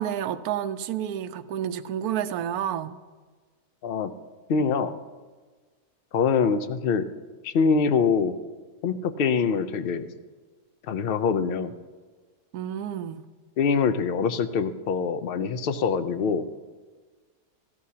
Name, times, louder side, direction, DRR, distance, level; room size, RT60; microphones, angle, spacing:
voice 1, 0.0-3.0 12.5-13.3, right 10 dB, 75° right, 10 dB, 1.1 m, -30 dB
voice 2, 4.5-4.9 6.1-7.0 7.4-8.3 8.8-10.1 10.9-11.7 13.6-16.4, left 5 dB, 70° left, 10 dB, 0.5 m, -24 dB
17.5 x 13.5 x 2.8 m, 1.4 s
omnidirectional pair, 1.6 m